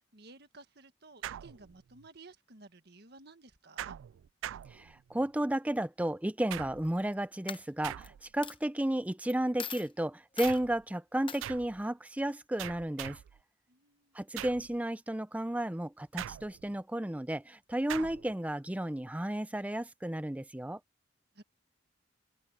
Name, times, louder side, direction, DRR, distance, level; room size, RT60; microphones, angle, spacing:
voice 1, 0.1-4.0 13.7-14.1 21.3-21.4, right 3 dB, 55° right, 1.7 m, -55 dB
sound 1, 1.2-2.1 3.8-5.3 6.5-7.1 7.8-8.5 10.4-10.8 11.4-11.8 12.6-13.4 14.4-14.8 16.2-16.8 17.9-18.3, right 11 dB, 85° right, 0.3 m, -42 dB
voice 2, 4.7-13.2 14.1-20.8, right 1 dB, 10° right, 0.5 m, -33 dB
Coin (dropping), 6.8-7.1 7.5-8.1 8.4-8.6 9.3-9.4 9.6-9.9 10.4-10.6 11.3-11.4, left 7 dB, 25° left, 1.0 m, -41 dB
head